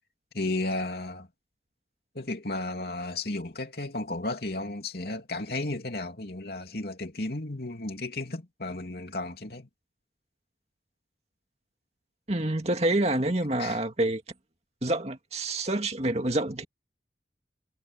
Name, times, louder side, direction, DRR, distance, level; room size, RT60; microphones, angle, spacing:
voice 1, 0.3-1.3 2.1-9.7 13.6-13.8, left 2 dB, 60° left, 3.1 m, -33 dB
voice 2, 12.3-14.2 14.8-16.6, right 1 dB, 35° right, 2.3 m, -27 dB
head